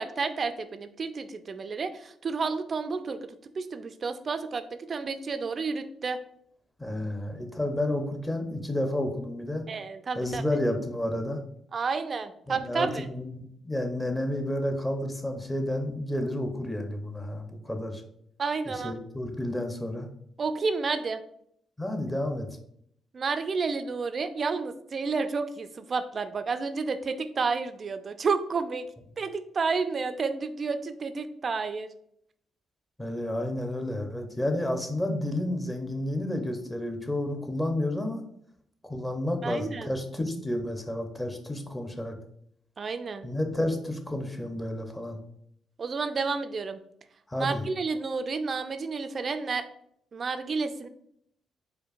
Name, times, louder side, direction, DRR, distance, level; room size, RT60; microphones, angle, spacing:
voice 1, 0.0-3.2 3.6-6.2 9.7-10.4 11.7-13.0 18.4-18.9 20.4-21.2 23.1-28.8 29.2-31.9 39.4-39.9 42.8-43.3 45.8-46.8 47.4-49.6 50.1-50.9, right 4 dB, 45° right, 10 dB, 0.3 m, -30 dB
voice 2, 6.8-9.6 10.1-11.4 12.5-18.0 18.7-20.1 21.8-22.5 33.0-38.2 38.8-42.1 43.2-45.2 47.3-47.6, left 1 dB, 15° left, 5 dB, 0.7 m, -31 dB
4.5 x 2.5 x 2.4 m, 0.69 s
supercardioid pair, 60°, 0 cm